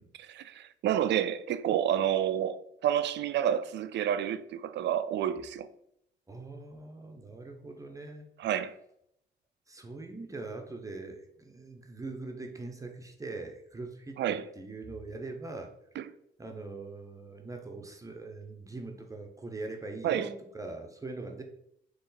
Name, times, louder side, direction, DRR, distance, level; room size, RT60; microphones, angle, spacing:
voice 1, 0.2-5.7 8.4-8.7 14.2-14.4 16.0-16.1 20.0-20.3, right 10 dB, 65° right, 0.4 m, -29 dB
voice 2, 6.3-8.3 9.7-15.7 16.4-21.4, right 3 dB, 15° right, 0.8 m, -42 dB
4.2 x 3.1 x 3.9 m
cardioid pair, 90°, 20 cm